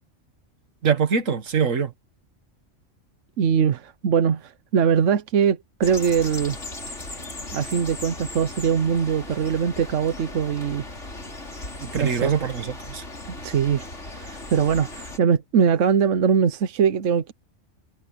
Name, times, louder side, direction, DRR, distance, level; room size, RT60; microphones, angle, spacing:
voice 1, 0.8-1.9 11.8-13.0, right 6 dB, 90° right, 1.9 m, -23 dB
voice 2, 3.4-6.6 7.5-10.8 12.0-12.3 13.4-17.3, right 7 dB, 75° right, 1.2 m, -22 dB
sound 1, 5.8-15.2, left 2 dB, 70° left, 4.8 m, -37 dB
omnidirectional pair, 1.3 m